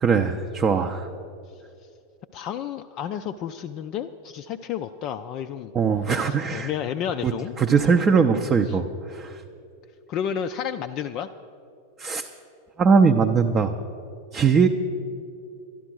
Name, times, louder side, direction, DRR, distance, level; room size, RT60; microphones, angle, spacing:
voice 1, 0.0-1.1 5.7-6.7 7.2-7.3 7.6-9.4 12.0-12.3 12.8-13.7 14.3-14.7, right 5 dB, 25° right, 3 dB, 0.5 m, -20 dB
voice 2, 2.3-5.7 6.1-7.5 8.7-8.8 10.1-11.3, left 9 dB, 35° left, 6 dB, 0.4 m, -31 dB
12.0 x 11.5 x 6.2 m, 2.6 s
figure-of-eight pair, 90°, 0 cm